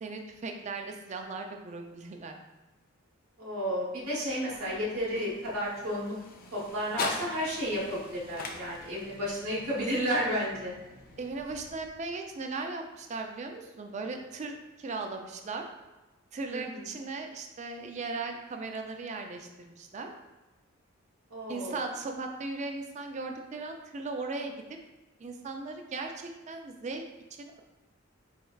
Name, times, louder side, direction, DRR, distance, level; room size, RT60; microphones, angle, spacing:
voice 1, 0.0-2.4 11.2-15.7 16.3-20.1 21.5-24.5 25.2-27.0 27.4-27.6, right 3 dB, 35° right, 4 dB, 0.3 m, -37 dB
voice 2, 3.4-6.1 6.5-10.7 16.5-17.0 21.3-21.8, equal, 80° right, -6 dB, 0.9 m, -32 dB
sound 1, 4.0-12.2, left 4 dB, 45° left, 0.4 m, -42 dB
4.2 x 3.2 x 2.3 m, 1.1 s
head